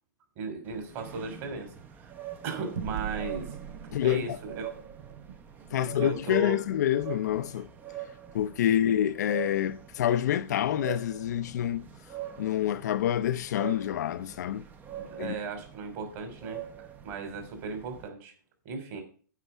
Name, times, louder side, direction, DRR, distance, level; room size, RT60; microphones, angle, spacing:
voice 1, 0.4-2.1 2.4-3.5 3.8-4.8 5.7-6.6 8.6-8.8 15.0-18.3 18.6-19.0, right 3 dB, 40° right, 2.9 m, -37 dB
sound 1, 0.6-18.1, right 11 dB, 15° right, 0.6 m, -44 dB
sound 2, 2.7-7.6, right 7 dB, 65° right, 1.0 m, -42 dB
voice 2, 3.9-4.4 5.7-7.7 8.3-11.9 12.4-14.6 15.2-15.3, left 11 dB, 60° left, 0.5 m, -27 dB
8.2 x 5.3 x 7.1 m
hypercardioid pair, 140°, 10 cm